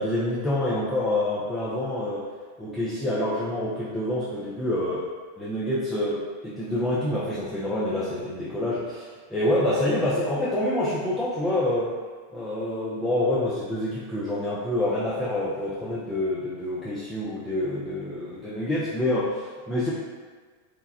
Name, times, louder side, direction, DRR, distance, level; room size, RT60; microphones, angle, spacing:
voice 1, 0.0-2.3 2.6-5.0 5.4-11.9 12.3-19.9, left 1 dB, 10° left, -8 dB, 0.4 m, -27 dB
3.1 x 2.2 x 2.3 m, 1.5 s
figure-of-eight pair, 90°, 0 cm